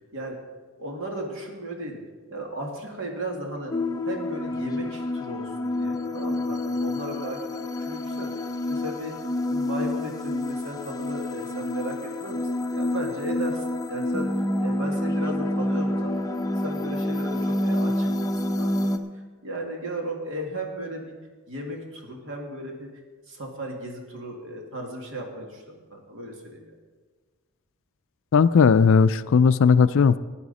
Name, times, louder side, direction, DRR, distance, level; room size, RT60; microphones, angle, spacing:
voice 1, 0.8-2.0 2.3-3.8 4.1-9.2 9.5-16.4 16.6-18.9 19.4-21.1 21.5-22.9 23.3-26.7, right 1 dB, 60° right, 1 dB, 2.2 m, -36 dB
sound 1, 3.7-19.0, left 1 dB, 15° left, 0.6 m, -28 dB
voice 2, 28.3-30.2, left 5 dB, 60° left, 15 dB, 0.4 m, -17 dB
15.5 x 9.9 x 4.1 m, 1.4 s
head